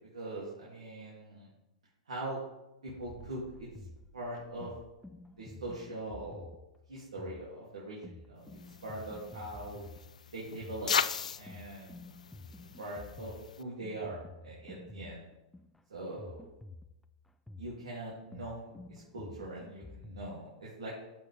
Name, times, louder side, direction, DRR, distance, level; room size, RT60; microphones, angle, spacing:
voice 1, 0.1-1.5 2.1-2.4 2.8-3.7 4.1-4.7 5.4-6.5 6.9-9.8 10.3-10.9 11.4-12.0 12.8-15.2 15.9-16.4 17.6-20.9, right 1 dB, 85° right, -6 dB, 2.8 m, -42 dB
sound 1, 2.9-5.6, right 5 dB, 30° right, 1.1 m, -55 dB
sound 2, 3.1-20.3, left 2 dB, 5° left, 0.4 m, -51 dB
sound 3, 8.5-13.6, left 7 dB, 90° left, 0.4 m, -38 dB
14.0 x 5.2 x 3.5 m, 0.96 s
hypercardioid pair, 115°, 4 cm